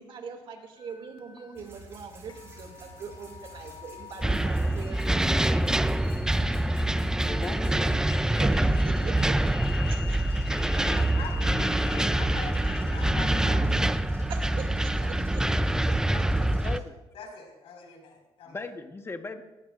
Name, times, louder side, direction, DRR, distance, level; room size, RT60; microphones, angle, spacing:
voice 1, 0.0-5.0 8.4-9.3 9.9-10.3 14.3-15.5, right 5 dB, 60° right, 3 dB, 2.4 m, -41 dB
sound 1, 0.8-16.7, left 10 dB, 50° left, 1.2 m, -47 dB
sound 2, 1.6-16.8, right 1 dB, 25° right, 6.2 m, -49 dB
sound 3, 4.2-16.8, right 1 dB, 5° right, 0.4 m, -25 dB
voice 2, 7.2-7.9 9.7-9.8 16.6-17.0 18.4-19.4, left 3 dB, 25° left, 7 dB, 1.2 m, -37 dB
voice 3, 10.8-14.0 14.8-15.5 16.1-16.7 17.1-18.6, left 4 dB, 80° left, 1 dB, 5.0 m, -43 dB
19.0 x 16.5 x 2.5 m, 1.0 s
cardioid pair, 105°, 10 cm